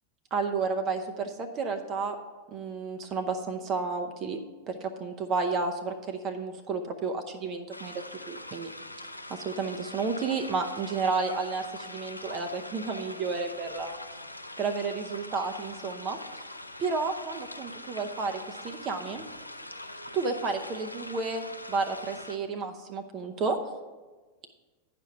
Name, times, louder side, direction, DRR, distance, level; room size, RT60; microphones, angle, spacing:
voice 1, 0.3-2.2 2.5-4.4 4.7-8.7 9.3-13.9 14.6-16.2 16.8-19.2 20.1-23.6, right 4 dB, 35° right, 6 dB, 0.7 m, -31 dB
sound 1, 7.7-22.4, left 1 dB, 85° left, 0.4 m, -43 dB
10.0 x 5.2 x 5.9 m, 1.3 s
figure-of-eight pair, 90°, 0 cm